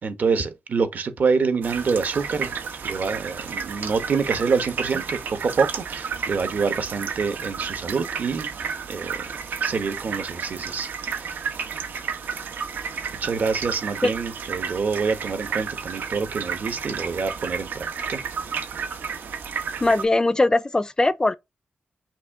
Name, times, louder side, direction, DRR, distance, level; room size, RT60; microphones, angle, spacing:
voice 1, 0.0-2.5 2.8-8.5 8.9-9.2 9.6-11.4 13.2-18.2, right 5 dB, 60° right, 1.1 m, -26 dB
sound 1, 1.6-20.1, right 6 dB, 85° right, 1.0 m, -32 dB
voice 2, 19.8-21.3, left 2 dB, 20° left, 0.4 m, -20 dB
5.9 x 2.5 x 3.5 m
wide cardioid pair, 105°, 3 cm